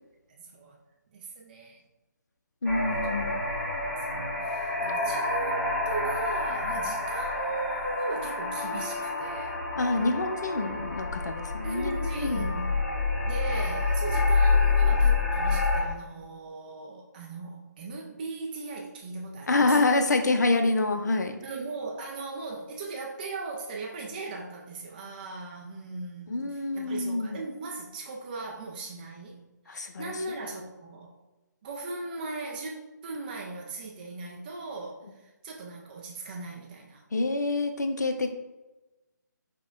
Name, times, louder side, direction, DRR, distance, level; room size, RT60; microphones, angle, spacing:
voice 1, 0.3-0.8 1.1-1.8 4.1-9.6 11.6-12.8 13.2-20.0 21.4-31.1 31.6-37.0, right 3 dB, 25° right, -1 dB, 0.4 m, -38 dB
voice 2, 2.6-3.4 9.8-12.5 19.5-21.4 26.3-27.4 29.7-30.1 37.1-38.3, left 2 dB, 65° left, 6 dB, 0.5 m, -27 dB
sound 1, 2.6-15.8, left 3 dB, 5° left, 1.2 m, -28 dB
5.8 x 2.2 x 2.4 m, 1.1 s
figure-of-eight pair, 145°, 10 cm